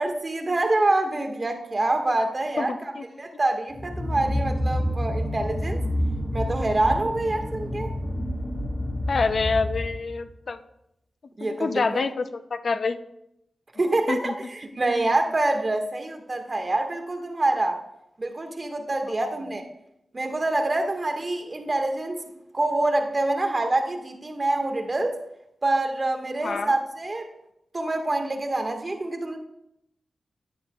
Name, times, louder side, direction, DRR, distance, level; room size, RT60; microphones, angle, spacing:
voice 1, 0.0-2.9 3.2-5.8 6.3-7.9 11.4-12.1 13.7-17.8 18.2-19.6 20.1-22.2 22.5-25.2 25.6-27.3 27.7-29.4, right 2 dB, 40° right, 4 dB, 1.6 m, -26 dB
voice 2, 2.6-3.0 9.1-10.6 11.4-12.3 12.5-13.0 14.1-14.3 19.2-19.4 26.4-26.7, left 4 dB, 65° left, 11 dB, 0.5 m, -27 dB
sound 1, 3.7-10.3, left 1 dB, 30° left, 1.7 m, -28 dB
11.0 x 9.5 x 2.3 m, 0.81 s
cardioid pair, 45°, 0 cm